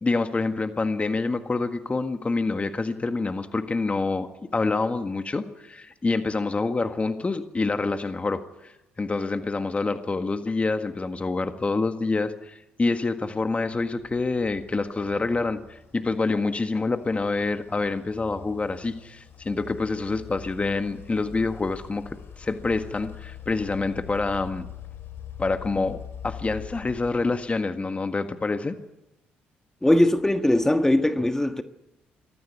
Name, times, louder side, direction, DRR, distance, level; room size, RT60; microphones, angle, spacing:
voice 1, 0.0-4.3 4.5-24.7 25.4-26.0 26.2-28.8, left 3 dB, 30° left, 1.7 m, -27 dB
sound 1, 13.5-27.9, left 9 dB, 60° left, 3.5 m, -44 dB
voice 2, 29.8-31.6, left 1 dB, 10° left, 1.5 m, -20 dB
20.5 x 14.0 x 9.7 m
hypercardioid pair, 55°, 5 cm